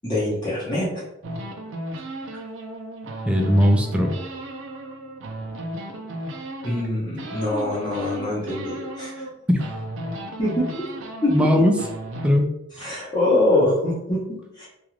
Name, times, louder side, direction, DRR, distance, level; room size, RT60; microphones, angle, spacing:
voice 1, 0.0-0.9 6.6-9.2 10.4-10.7 11.2-11.3 12.8-14.7, left 1 dB, 25° left, -8 dB, 0.8 m, -24 dB
sound 1, 1.2-6.9 7.2-9.3 9.6-12.3, right 1 dB, 70° right, 0.5 m, -34 dB
voice 2, 3.3-4.1 9.5-9.6 11.3-11.7 12.2-12.5 12.8-12.9, equal, 5° right, 2 dB, 0.3 m, -18 dB
2.4 x 2.3 x 3.1 m, 0.85 s
head